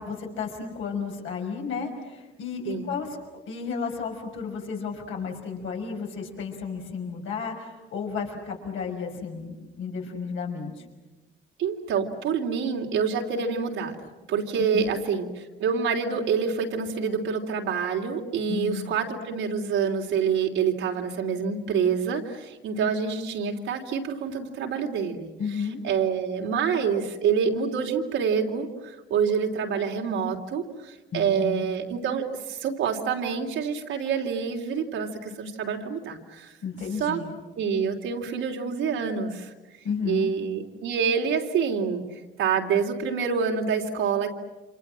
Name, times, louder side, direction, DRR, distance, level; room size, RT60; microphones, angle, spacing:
voice 1, 0.0-3.2 3.5-10.8 14.6-15.0 18.5-19.0 25.4-25.8 31.1-31.7 36.6-37.3 39.8-40.3, left 5 dB, 80° left, 1 dB, 5.9 m, -33 dB
voice 2, 11.6-13.9 14.3-36.5 37.0-37.2 37.6-39.5 40.0-42.0 42.4-44.3, right 6 dB, 85° right, 1 dB, 3.4 m, -27 dB
29.0 x 26.5 x 7.7 m, 1.1 s
cardioid pair, 90°, 20 cm